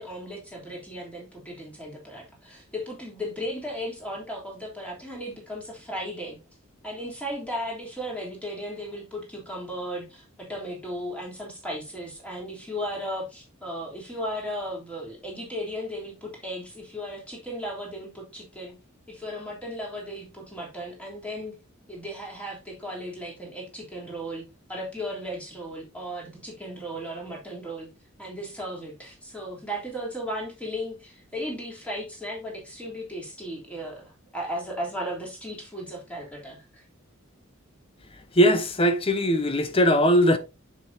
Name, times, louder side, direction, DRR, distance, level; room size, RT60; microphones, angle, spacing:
voice 1, 0.0-6.4 6.8-18.8 19.1-21.6 21.9-27.9 28.2-36.8, equal, 5° left, 3.4 m, -36 dB
voice 2, 38.3-40.4, equal, 25° left, 0.9 m, -20 dB
7.4 x 7.1 x 2.8 m
head